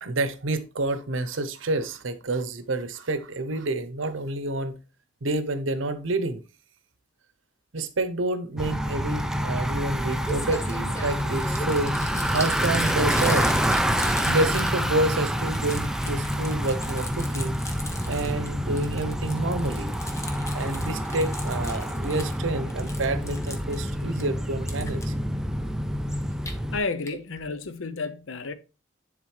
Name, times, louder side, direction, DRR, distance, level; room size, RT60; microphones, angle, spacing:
voice 1, 0.0-4.8 5.2-6.4 7.7-13.5 13.9-17.6 18.1-19.9 20.5-25.1, right 2 dB, 80° right, 0.8 m, -29 dB
Bicycle, 8.6-26.8, equal, 5° right, 0.4 m, -27 dB
Crumpling crinkling, 10.2-15.1 15.4-18.5 18.8-22.4 22.7-24.2 24.7-25.0 26.2-26.5 27.1-27.2 27.4-27.5 27.7-27.8, left 1 dB, 15° left, 1.0 m, -39 dB
voice 2, 26.7-28.5, left 3 dB, 85° left, 0.7 m, -31 dB
10.5 x 3.7 x 3.2 m
head